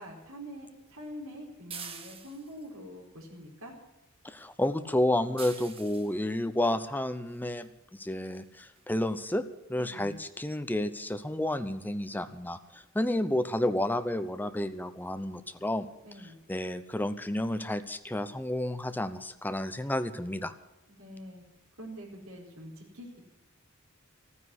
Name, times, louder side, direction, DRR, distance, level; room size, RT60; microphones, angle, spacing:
voice 1, 0.0-3.7 9.7-10.2 16.1-16.3 21.0-21.4 21.8-23.2, equal, 75° right, -2 dB, 4.4 m, -45 dB
sound 1, 1.7-2.7 5.4-6.2 7.6-7.7 8.3-8.5 8.8-8.9 9.2-9.3, right 6 dB, 25° right, 1.5 m, -44 dB
voice 2, 4.2-7.7 8.0-9.4 9.7-15.9 16.2-20.5, left 1 dB, 10° left, 11 dB, 0.8 m, -31 dB
14.0 x 9.7 x 9.9 m, 0.97 s
head